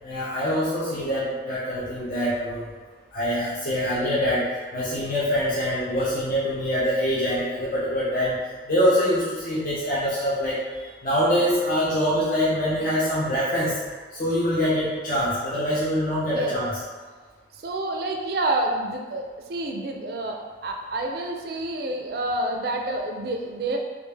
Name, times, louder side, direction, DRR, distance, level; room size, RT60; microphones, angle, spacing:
voice 1, 0.0-2.7 3.1-13.8 14.1-16.7, equal, 45° left, -9 dB, 0.7 m, -24 dB
voice 2, 17.6-23.8, right 2 dB, 55° right, 2 dB, 0.4 m, -28 dB
3.2 x 2.4 x 3.3 m, 1.4 s
head